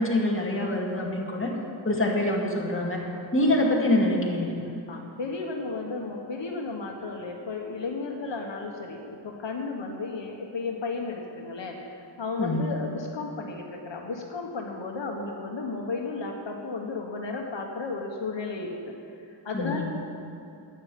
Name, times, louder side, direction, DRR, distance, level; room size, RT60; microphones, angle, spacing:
voice 1, 0.0-1.5 1.8-3.0 3.3-4.5 12.4-12.6 19.5-19.8, left 1 dB, 30° left, -2 dB, 2.1 m, -25 dB
voice 2, 4.6-18.9 19.3-19.8, left 3 dB, 75° left, 1 dB, 1.3 m, -34 dB
11.5 x 9.6 x 7.6 m, 2.7 s
wide cardioid pair, 100°, 44 cm